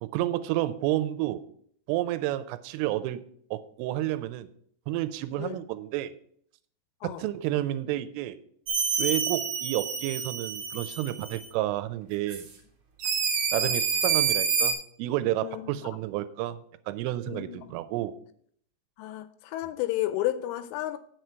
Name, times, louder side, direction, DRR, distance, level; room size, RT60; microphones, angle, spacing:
voice 1, 0.0-1.4 1.9-3.2 3.5-4.5 4.9-6.1 7.0-8.4 9.0-12.5 13.5-16.6 16.9-18.2, right 14 dB, 85° right, 3.2 m, -30 dB
sound 1, 8.7-11.5 12.3-12.4 13.0-14.7, right 6 dB, 70° right, 1.6 m, -28 dB
voice 2, 15.4-16.1 17.3-17.8 19.0-21.0, left 14 dB, 85° left, 3.0 m, -32 dB
9.4 x 6.5 x 4.5 m
omnidirectional pair, 5.7 m